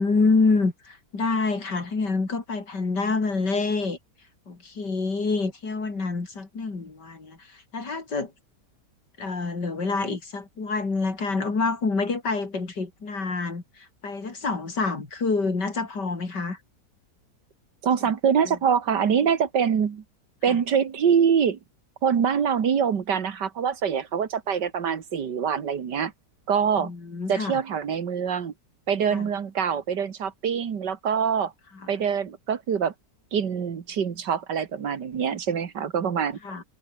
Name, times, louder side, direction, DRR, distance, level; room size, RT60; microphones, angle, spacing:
voice 1, 0.0-4.0 4.5-7.4 7.7-8.3 9.2-16.6 18.5-18.6 20.5-20.6 26.8-27.6 29.1-29.3 36.4-36.6, left 4 dB, 80° left, 4.4 m, -27 dB
voice 2, 17.8-20.0 20.4-21.6 22.0-26.1 26.5-26.9 27.3-28.5 28.9-31.5 31.9-32.9 33.3-36.4, right 7 dB, 80° right, 2.3 m, -24 dB
omnidirectional pair, 1.8 m